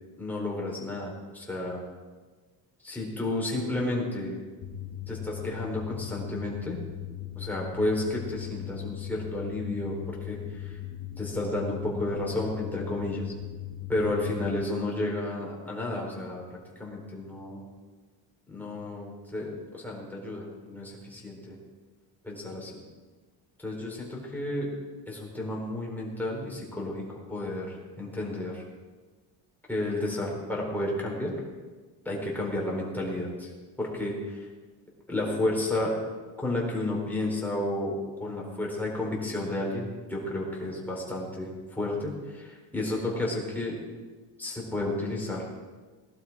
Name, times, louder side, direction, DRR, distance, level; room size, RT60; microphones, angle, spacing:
voice 1, 0.2-1.8 2.8-4.4 5.1-6.8 7.4-10.8 11.2-13.3 13.9-16.4 16.8-17.7 18.5-21.6 22.2-22.8 23.6-24.7 25.1-28.6 29.7-31.3 32.0-33.5 33.8-34.5 35.1-35.9 36.4-37.9 38.2-43.8 44.4-45.5, left 1 dB, 5° left, -3 dB, 4.2 m, -32 dB
sound 1, 4.6-14.6, left 13 dB, 40° left, 1.3 m, -39 dB
20.0 x 12.0 x 4.8 m, 1.4 s
cardioid pair, 140°, 46 cm